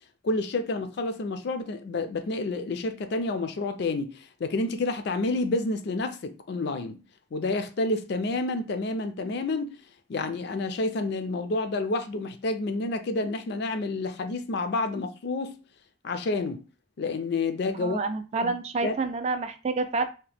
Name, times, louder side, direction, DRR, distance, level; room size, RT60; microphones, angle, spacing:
voice 1, 0.2-7.0 7.3-9.7 10.1-15.6 16.0-16.6 17.0-18.0 18.4-18.5 18.8-18.9, left 2 dB, 60° left, 0.4 m, -29 dB
voice 2, 17.8-20.1, right 3 dB, 35° right, 0.3 m, -28 dB
2.8 x 2.1 x 3.3 m
head